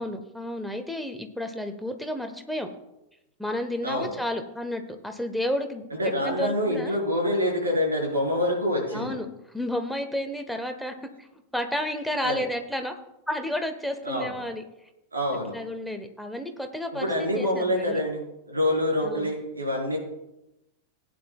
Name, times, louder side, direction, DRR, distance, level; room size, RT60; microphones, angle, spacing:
voice 1, 0.0-2.7 3.4-6.9 8.9-11.3 11.5-13.0 13.3-14.6 15.5-18.0 19.0-19.3, left 1 dB, ahead, 5 dB, 1.2 m, -31 dB
voice 2, 3.8-4.1 5.9-9.2 12.2-12.4 14.0-14.4 15.1-15.6 17.0-20.0, left 1 dB, 80° right, -1 dB, 4.4 m, -26 dB
18.5 x 9.5 x 2.4 m, 0.92 s
figure-of-eight pair, 90°, 0 cm